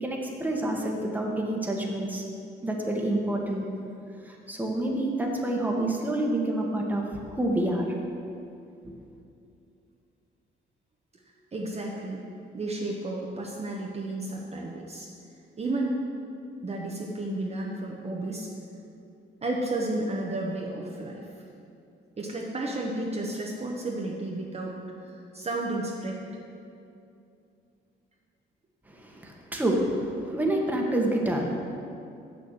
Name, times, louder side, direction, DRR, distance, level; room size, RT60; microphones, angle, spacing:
voice 1, 0.0-2.2 2.6-3.6 4.2-7.9 28.9-31.6, right 1 dB, 10° right, -1 dB, 1.6 m, -28 dB
voice 2, 11.5-12.2 12.5-15.1 15.6-16.0 16.6-18.5 19.4-21.3 22.2-26.2, right 2 dB, 30° right, -2 dB, 1.2 m, -32 dB
7.5 x 6.8 x 6.7 m, 2.6 s
cardioid pair, 90°, 20 cm